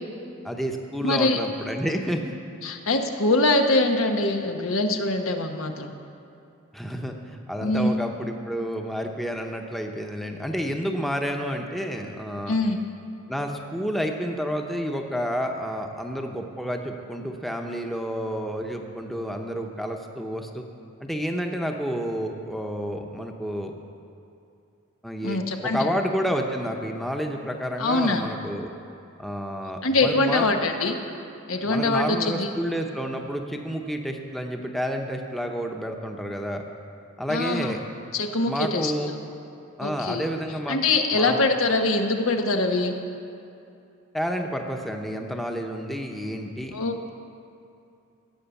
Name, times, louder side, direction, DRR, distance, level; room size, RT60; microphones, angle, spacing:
voice 1, 0.4-2.3 6.7-12.6 13.3-20.6 21.0-23.7 25.0-28.7 29.2-30.5 31.7-36.6 37.2-37.8 38.5-39.1 39.8-40.8 41.1-41.4 44.1-46.8, equal, ahead, 3 dB, 0.8 m, -30 dB
voice 2, 1.0-1.4 2.6-5.9 7.6-8.0 12.5-12.8 25.2-25.9 27.8-28.2 29.8-31.0 31.5-32.5 37.3-37.8 38.1-38.9 39.8-40.2 40.7-43.0 46.7-47.1, left 2 dB, 85° left, 4 dB, 1.2 m, -23 dB
15.5 x 8.5 x 7.1 m, 2.6 s
head